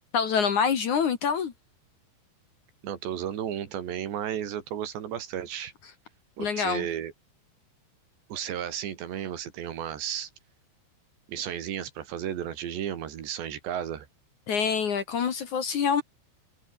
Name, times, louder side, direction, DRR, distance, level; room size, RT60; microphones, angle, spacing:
voice 1, 0.1-1.5 6.4-6.9 14.5-16.0, left 6 dB, 55° left, 2.8 m, -26 dB
voice 2, 2.8-5.7 6.4-7.1 8.3-10.3 11.3-14.1, right 10 dB, 75° right, 4.7 m, -33 dB
omnidirectional pair, 5.1 m